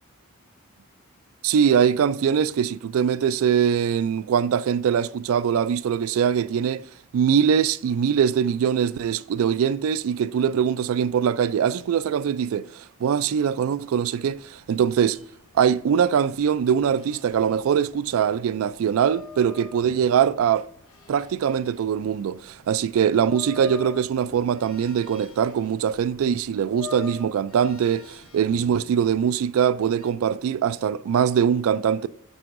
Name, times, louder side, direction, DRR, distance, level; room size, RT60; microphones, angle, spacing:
voice 1, 1.4-6.8 7.1-15.2 15.5-20.7 21.1-32.1, right 8 dB, 75° right, 0.3 m, -22 dB
sound 1, 14.1-30.1, left 6 dB, 80° left, 0.9 m, -46 dB
6.8 x 6.1 x 2.5 m
head